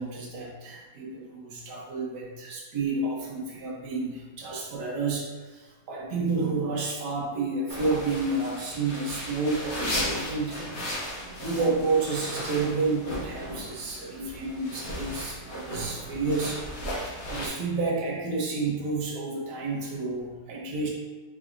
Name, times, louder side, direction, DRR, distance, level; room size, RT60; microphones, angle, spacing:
voice 1, 0.0-10.7 11.4-16.6 17.3-20.9, right 3 dB, 70° right, -2 dB, 1.4 m, -30 dB
sound 1, 7.7-17.5, equal, 45° left, 1.2 m, -35 dB
4.6 x 3.8 x 2.5 m, 1.3 s
omnidirectional pair, 1.9 m